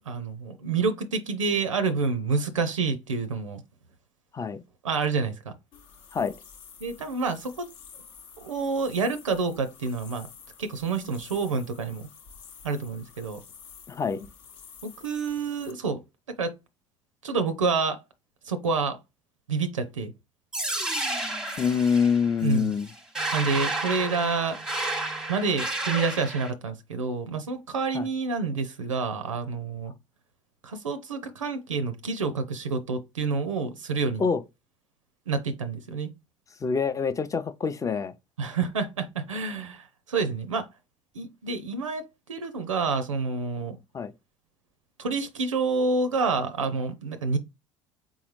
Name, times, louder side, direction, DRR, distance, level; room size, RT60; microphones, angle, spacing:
voice 1, 0.0-3.6 4.8-5.5 6.8-7.7 8.4-10.3 10.6-12.1 12.6-13.4 14.8-16.0 16.3-16.5 17.2-18.0 18.5-19.0 19.5-20.1 22.4-22.7 23.3-24.6 25.3-29.9 30.6-34.2 35.3-36.1 38.4-40.7 41.1-43.8 45.0-47.4, right 4 dB, 80° right, 0.4 m, -28 dB
sound 1, 5.7-15.7, left 6 dB, 55° left, 0.7 m, -50 dB
voice 2, 13.9-14.3 21.6-22.9 27.9-28.1 34.2-34.4 36.6-38.1 43.9-44.1, left 6 dB, 20° left, 0.5 m, -25 dB
sound 2, 20.5-26.5, right 2 dB, 5° right, 0.8 m, -31 dB
3.9 x 3.5 x 3.0 m
figure-of-eight pair, 60°, 16 cm